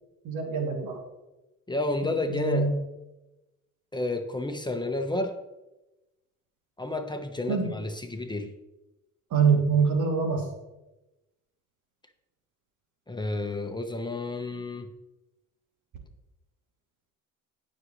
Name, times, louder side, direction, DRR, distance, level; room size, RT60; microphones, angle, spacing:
voice 1, 0.2-1.0 2.3-2.8 7.5-7.7 9.3-10.4, right 5 dB, 70° right, 1 dB, 2.9 m, -24 dB
voice 2, 1.7-2.7 3.9-5.3 6.8-8.5 13.1-14.9, left 2 dB, 15° left, 5 dB, 1.1 m, -30 dB
18.0 x 6.4 x 3.2 m, 1.0 s
cardioid pair, 85°, 32 cm